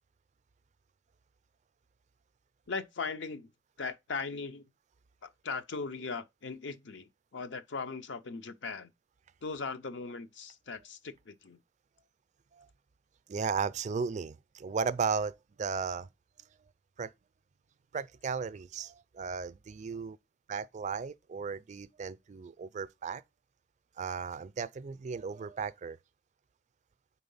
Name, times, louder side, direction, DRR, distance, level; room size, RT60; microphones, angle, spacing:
voice 1, 2.7-3.5 3.8-4.7 5.2-8.9 9.4-11.6, left 4 dB, 75° left, 0.7 m, -39 dB
voice 2, 13.3-16.1 17.0-17.1 17.9-20.2 20.5-23.2 24.0-26.0, right 5 dB, 40° right, 0.4 m, -35 dB
4.6 x 4.1 x 5.4 m
head